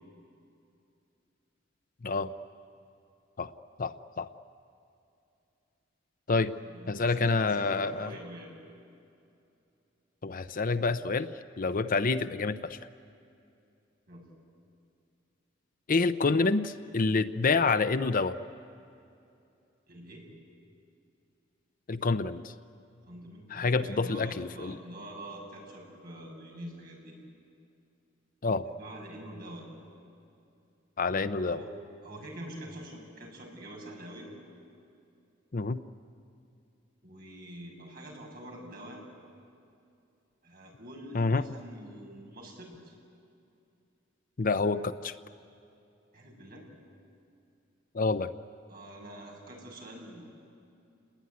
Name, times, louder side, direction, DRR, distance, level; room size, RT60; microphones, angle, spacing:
voice 1, 3.8-4.3 6.3-6.5 6.9-8.1 10.2-12.8 15.9-18.4 21.9-22.5 23.5-24.8 28.4-28.7 31.0-31.6 35.5-35.8 41.1-41.4 44.4-45.1 47.9-48.3, left 4 dB, 45° left, 12 dB, 0.7 m, -28 dB
voice 2, 6.3-8.5 14.1-14.2 19.9-20.2 23.1-27.2 28.7-29.7 31.5-31.7 32.0-34.3 37.0-39.0 40.4-42.9 46.1-46.6 48.7-50.2, right 1 dB, 50° right, -1 dB, 6.7 m, -45 dB
29.5 x 21.0 x 9.5 m, 2.6 s
head